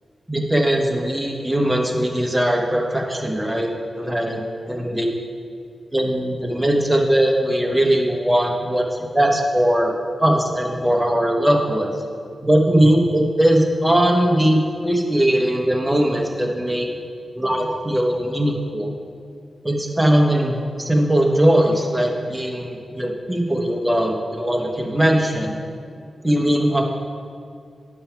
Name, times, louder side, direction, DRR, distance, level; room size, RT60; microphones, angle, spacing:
voice 1, 0.3-4.4 4.7-5.1 5.9-9.9 10.2-11.9 12.4-16.9 17.3-18.9 19.6-25.5 26.2-26.8, right 1 dB, 5° right, 0 dB, 1.0 m, -20 dB
10.5 x 5.5 x 4.5 m, 2.3 s
wide cardioid pair, 145°, 0 cm